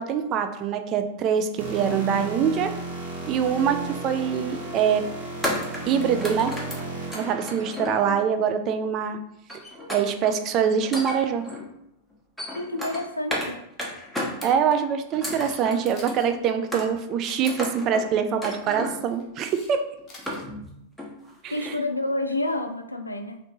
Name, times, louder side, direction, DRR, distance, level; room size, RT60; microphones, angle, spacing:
voice 1, 0.0-2.7 3.3-5.1 5.9-6.5 7.1-9.2 9.9-11.4 14.4-19.8 21.4-21.8, right 7 dB, 35° right, 8 dB, 0.3 m, -24 dB
sound 1, 1.6-8.1, right 3 dB, 60° right, 0.8 m, -34 dB
sound 2, 4.0-4.2 5.4-8.4 9.5-10.4 10.8-11.7 12.1-13.5 13.8-14.8 15.1-16.2 16.7-17.1 17.5-18.1 18.4-19.1 19.5-19.6 20.0-20.7 21.0-21.3 21.6-21.7, left 1 dB, 5° left, 0.8 m, -33 dB
voice 2, 12.6-13.6 21.5-23.4, left 2 dB, 85° left, 5 dB, 0.3 m, -29 dB
Camera, 15.1-15.6 15.9-16.3 17.2-17.5 18.8-19.7 20.0-20.4, left 2 dB, 30° left, 1.0 m, -46 dB
3.1 x 2.6 x 3.0 m, 0.79 s
figure-of-eight pair, 90°, 0 cm